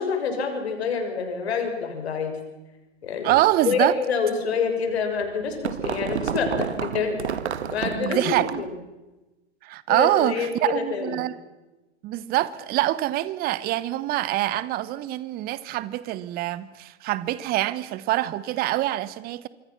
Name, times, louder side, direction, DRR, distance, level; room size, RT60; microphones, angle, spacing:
voice 1, 0.0-2.4 3.0-7.4 7.7-8.7 9.9-11.2, left 5 dB, 60° left, 6.2 m, -27 dB
voice 2, 3.2-3.9 7.8-8.6 9.6-11.4 12.0-19.5, right 15 dB, 25° right, 1.1 m, -25 dB
sound 1, 5.0-8.7, right 8 dB, 65° right, 1.7 m, -30 dB
26.5 x 24.0 x 6.0 m
figure-of-eight pair, 110°, 35 cm